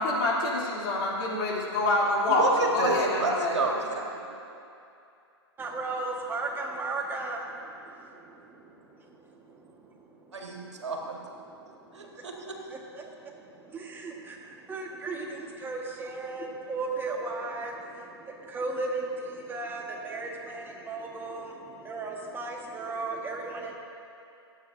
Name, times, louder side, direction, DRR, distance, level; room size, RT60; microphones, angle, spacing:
voice 1, 0.0-3.5, left 2 dB, 45° left, -4 dB, 3.1 m, -26 dB
voice 2, 2.3-4.3 10.3-11.2 11.9-12.6, right 3 dB, 90° right, 0 dB, 1.9 m, -30 dB
voice 3, 5.6-10.9 11.4-12.3 12.7-23.8, right 3 dB, 15° right, 0 dB, 1.5 m, -36 dB
25.0 x 8.9 x 2.7 m, 2.6 s
hypercardioid pair, 130°, 14 cm